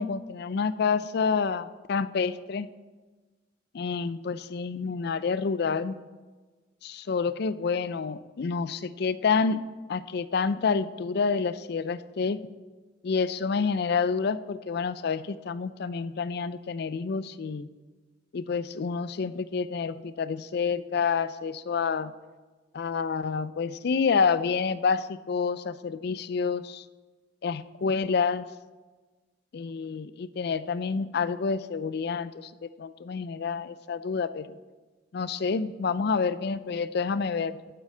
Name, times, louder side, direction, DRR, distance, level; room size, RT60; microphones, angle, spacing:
voice 1, 0.0-2.7 3.7-6.0 6.8-9.6 9.9-12.5 13.0-17.7 18.3-22.1 22.7-26.8 27.4-28.5 29.5-34.6 35.1-37.6, left 5 dB, 60° left, 15 dB, 0.4 m, -28 dB
10.5 x 8.4 x 5.0 m, 1.3 s
head